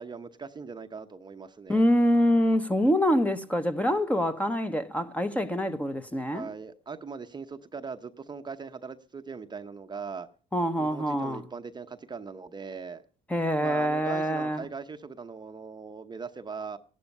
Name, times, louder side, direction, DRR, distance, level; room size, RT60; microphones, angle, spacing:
voice 1, 0.0-1.8 6.3-10.3 10.8-13.0 13.6-16.8, right 5 dB, 25° right, 0.9 m, -40 dB
voice 2, 1.7-6.5 10.5-11.4 13.3-14.6, equal, 10° left, 1.1 m, -25 dB
15.5 x 12.0 x 5.4 m
cardioid pair, 110°, 17 cm